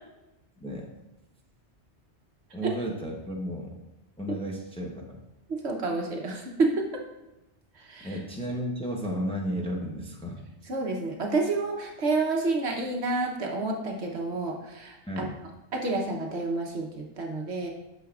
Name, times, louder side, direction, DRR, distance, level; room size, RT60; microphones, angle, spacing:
voice 1, 2.5-3.7 4.2-5.2 8.0-10.4 15.1-15.3, equal, 5° left, 0 dB, 0.8 m, -33 dB
voice 2, 5.5-7.0 7.8-8.2 10.7-15.3 15.7-17.7, right 3 dB, 70° right, 1 dB, 1.3 m, -29 dB
9.2 x 6.2 x 2.5 m, 0.97 s
omnidirectional pair, 1.1 m